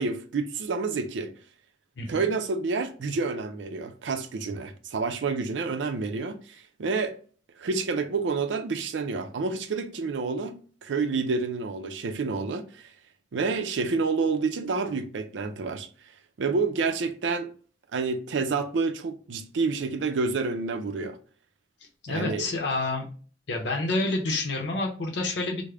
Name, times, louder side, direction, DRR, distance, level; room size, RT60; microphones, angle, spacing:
voice 1, 0.0-1.3 2.1-7.2 7.6-12.9 13.3-15.9 16.4-17.5 17.9-21.2 22.1-22.5, right 4 dB, 80° right, 0.4 m, -29 dB
voice 2, 22.0-23.1 23.5-25.6, left 2 dB, 70° left, 0.7 m, -28 dB
3.3 x 2.0 x 3.6 m
head